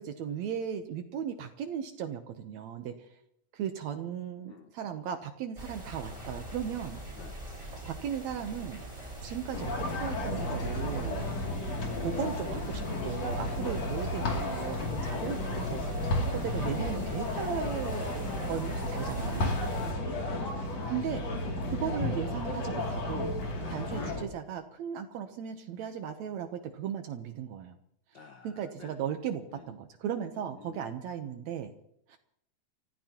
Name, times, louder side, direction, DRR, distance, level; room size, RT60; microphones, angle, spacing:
voice 1, 0.0-3.2 3.5-7.0 7.6-8.8 9.2-11.3 12.0-19.5 20.9-21.3 21.7-23.3 23.7-27.8 28.4-31.7 32.1-32.2, right 8 dB, 70° right, 7 dB, 2.1 m, -37 dB
sound 1, 5.6-19.9, right 1 dB, 10° right, 4.5 m, -43 dB
sound 2, 9.5-24.2, left 1 dB, 60° left, 3.9 m, -33 dB
voice 2, 19.8-20.6 23.4-23.8 28.1-28.9 30.6-30.9, left 6 dB, 75° left, 6 dB, 1.0 m, -50 dB
29.5 x 15.0 x 2.9 m, 0.74 s
omnidirectional pair, 3.4 m